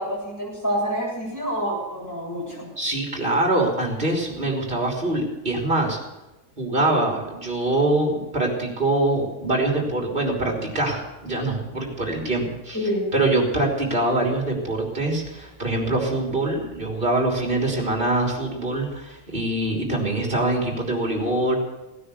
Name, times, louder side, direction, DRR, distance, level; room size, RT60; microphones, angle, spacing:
voice 1, 0.0-2.7 12.7-13.1, equal, 10° left, -5 dB, 7.8 m, -27 dB
voice 2, 2.8-6.0 6.6-12.8 13.1-21.5, right 2 dB, 35° right, 1 dB, 3.6 m, -24 dB
18.0 x 9.9 x 7.0 m, 1.0 s
omnidirectional pair, 1.5 m